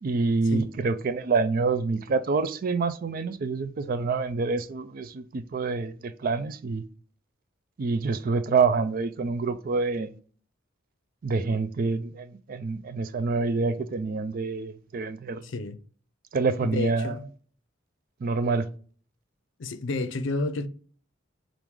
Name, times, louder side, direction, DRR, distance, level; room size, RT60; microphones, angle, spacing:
voice 1, 0.0-6.8 7.8-10.1 11.2-15.4 16.3-17.2 18.2-18.7, right 4 dB, 45° right, 0.4 m, -27 dB
voice 2, 15.4-15.8 16.6-17.3 19.6-20.7, left 3 dB, 70° left, 0.5 m, -30 dB
3.6 x 2.5 x 4.6 m
head